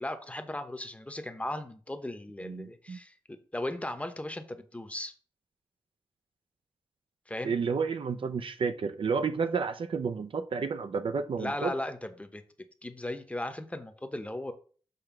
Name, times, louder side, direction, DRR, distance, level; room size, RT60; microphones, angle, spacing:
voice 1, 0.0-3.1 3.5-5.1 7.3-7.5 11.4-12.4 12.8-14.5, left 1 dB, 15° left, 8 dB, 0.9 m, -36 dB
voice 2, 2.4-3.0 7.4-11.7, right 5 dB, 60° right, 10 dB, 0.5 m, -31 dB
6.9 x 3.2 x 5.9 m, 0.42 s
wide cardioid pair, 95°, 10 cm